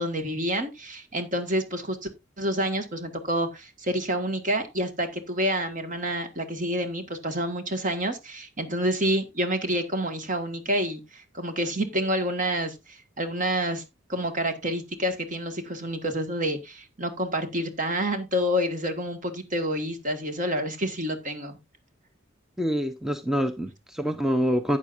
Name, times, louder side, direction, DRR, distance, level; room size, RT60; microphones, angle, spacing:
voice 1, 0.0-2.1 2.4-13.8 14.1-21.6, equal, 40° right, 1.6 m, -28 dB
voice 2, 22.6-24.8, equal, ahead, 0.6 m, -26 dB
12.0 x 8.5 x 2.5 m
head